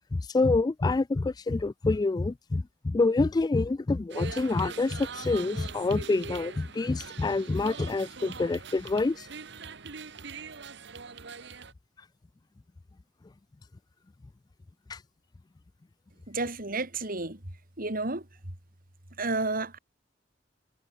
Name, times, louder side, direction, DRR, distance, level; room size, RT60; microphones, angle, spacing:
voice 1, 0.0-9.3 14.9-15.0, left 3 dB, 20° left, 0.3 m, -27 dB
sound 1, 4.1-11.7, right 5 dB, 65° right, 1.6 m, -42 dB
voice 2, 16.3-17.4 17.8-18.2 19.2-19.8, right 3 dB, 50° right, 4.2 m, -31 dB
head